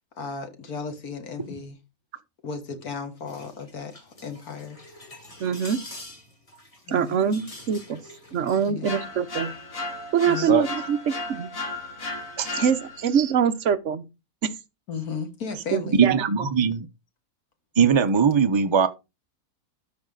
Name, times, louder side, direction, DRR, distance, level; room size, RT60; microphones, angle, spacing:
voice 1, 0.2-1.8 2.4-4.8 6.9-7.2 8.7-9.0 10.2-10.6 14.9-16.0, left 5 dB, 85° left, 2.1 m, -35 dB
sound 1, 3.2-8.7, left 1 dB, 25° left, 2.2 m, -45 dB
voice 2, 5.4-5.8 6.9-8.0 8.3-9.5 10.1-11.5 12.6-14.0 15.7-16.2, right 7 dB, 60° right, 1.1 m, -24 dB
sound 2, 8.8-13.2, left 3 dB, 65° left, 2.3 m, -35 dB
voice 3, 10.4-10.7 12.4-12.6 13.1-13.3 16.0-16.9 17.8-18.9, right 6 dB, 40° right, 0.4 m, -21 dB
13.0 x 5.4 x 3.8 m
omnidirectional pair, 1.5 m